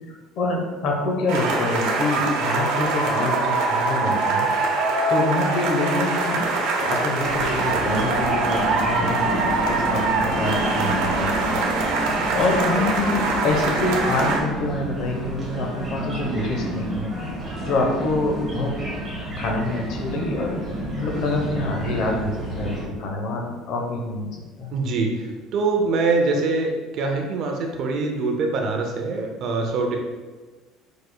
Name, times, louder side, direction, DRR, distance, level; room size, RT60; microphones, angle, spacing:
voice 1, 0.1-4.5 5.1-6.4 6.8-11.6 12.3-17.1 17.6-18.7 19.3-20.6 21.0-24.3 24.6-24.7, left 2 dB, 45° left, 1 dB, 0.9 m, -26 dB
sound 1, 1.3-14.4, right 3 dB, 80° right, 0.9 m, -23 dB
sound 2, 7.2-22.8, right 1 dB, 15° right, 1.1 m, -30 dB
voice 2, 24.7-30.0, right 3 dB, 45° right, 2 dB, 0.5 m, -24 dB
4.9 x 4.6 x 2.2 m, 1.3 s
cardioid pair, 180°, 0 cm